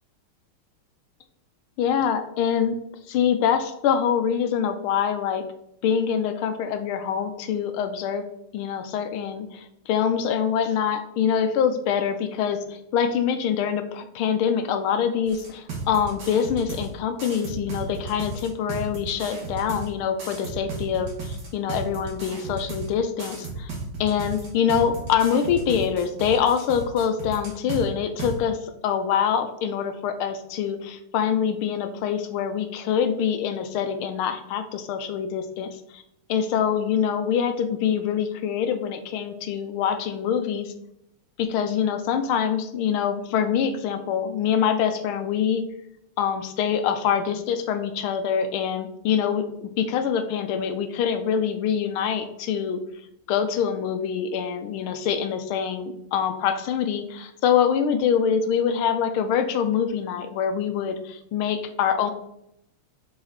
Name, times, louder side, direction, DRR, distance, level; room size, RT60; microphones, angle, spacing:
voice 1, 1.8-2.8 3.1-5.4 5.8-8.2 8.5-23.7 24.0-36.0 36.3-40.7 41.4-45.6 46.2-52.8 53.3-62.1, left 8 dB, 85° left, 8 dB, 1.6 m, -25 dB
sound 1, 15.3-16.9 17.2-19.9 20.2-22.9 23.2-27.8 28.2-28.3, right 4 dB, 55° right, 2.4 m, -34 dB
7.8 x 4.2 x 4.1 m, 0.78 s
omnidirectional pair, 2.3 m